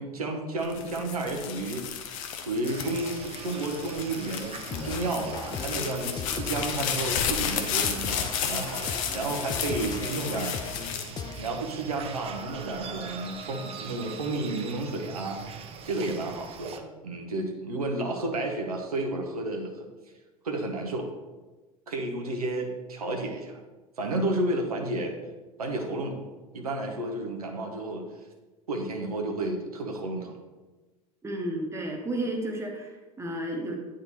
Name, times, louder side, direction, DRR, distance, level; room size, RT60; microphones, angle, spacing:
voice 1, 0.0-1.8 2.4-10.5 11.4-15.4 15.8-19.9 20.4-21.1 21.9-23.6 24.0-25.2 25.6-26.3 26.5-28.0 28.7-30.4, right 2 dB, 75° right, 1 dB, 0.8 m, -31 dB
sound 1, 0.6-12.0 12.5-13.1, left 8 dB, 60° left, 0.7 m, -33 dB
sound 2, 2.6-16.8, right 6 dB, 30° right, 0.6 m, -42 dB
sound 3, 4.7-11.6, left 7 dB, 20° left, 0.4 m, -39 dB
voice 2, 31.2-33.8, right 1 dB, 15° right, 1 dB, 1.1 m, -32 dB
9.1 x 3.7 x 2.9 m, 1.2 s
figure-of-eight pair, 75°, 19 cm